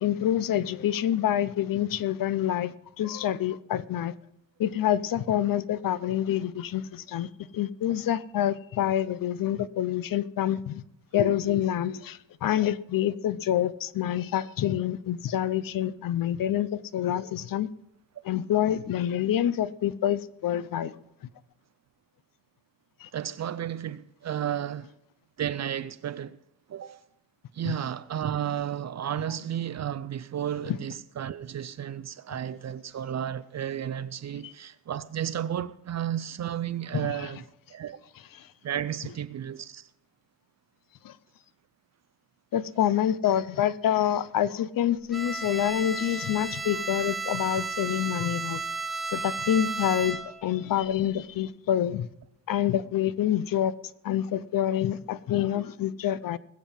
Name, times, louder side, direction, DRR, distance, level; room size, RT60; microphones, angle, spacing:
voice 1, 0.0-4.1 4.6-10.8 11.1-17.7 18.2-20.9 23.0-23.1 27.6-27.7 34.4-34.5 36.9-37.3 38.4-38.5 41.0-41.2 42.5-48.6 49.1-52.1 52.5-53.7 54.0-56.4, left 11 dB, 55° left, 0.6 m, -27 dB
voice 2, 23.1-24.9 25.4-26.4 26.7-27.0 27.5-37.4 37.7-38.0 38.6-39.9, right 10 dB, 45° right, 0.5 m, -33 dB
Bowed string instrument, 45.1-50.5, right 4 dB, ahead, 0.9 m, -33 dB
20.5 x 7.4 x 5.5 m
cardioid pair, 130°, 40 cm